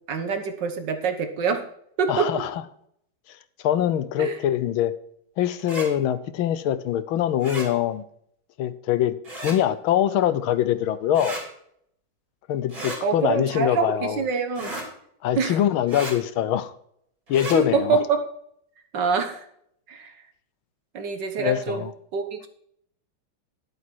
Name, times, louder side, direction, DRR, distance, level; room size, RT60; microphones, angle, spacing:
voice 1, 0.1-1.6 2.0-2.3 4.2-4.4 13.0-14.7 15.4-15.6 17.5-18.3 18.9-19.5 19.9-20.2 20.9-21.8 22.1-22.5, right 5 dB, 60° right, 1.7 m, -25 dB
voice 2, 2.1-2.6 3.3-4.9 5.4-8.0 8.6-11.4 12.5-14.2 15.2-16.7 17.3-18.0 21.4-21.9, left 11 dB, 80° left, 1.5 m, -24 dB
sound 1, 5.6-5.9 7.4-7.7 9.2-9.6 11.1-11.4 12.7-13.0 14.5-14.9 15.9-16.1 17.3-17.6, right 2 dB, 40° right, 4.1 m, -33 dB
11.0 x 8.4 x 4.5 m
omnidirectional pair, 2.3 m